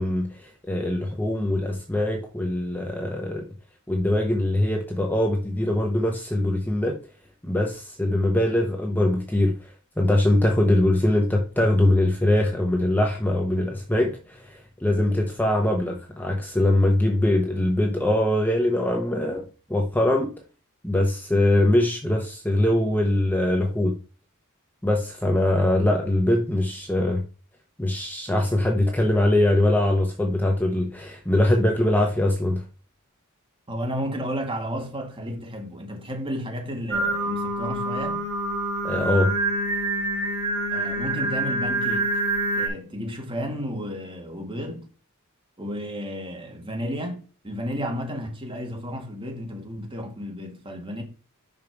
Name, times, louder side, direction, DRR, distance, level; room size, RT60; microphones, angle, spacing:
voice 1, 0.0-3.5 3.9-7.0 7.4-19.4 19.7-20.3 20.8-23.9 24.8-27.2 27.8-32.6 38.8-39.3, left 1 dB, 10° left, 0.9 m, -22 dB
voice 2, 33.7-38.2 40.7-42.1 42.6-44.9 45.6-51.0, equal, 25° right, 1.8 m, -32 dB
Singing, 36.9-42.7, right 2 dB, 85° right, 2.0 m, -26 dB
5.6 x 5.2 x 4.6 m
head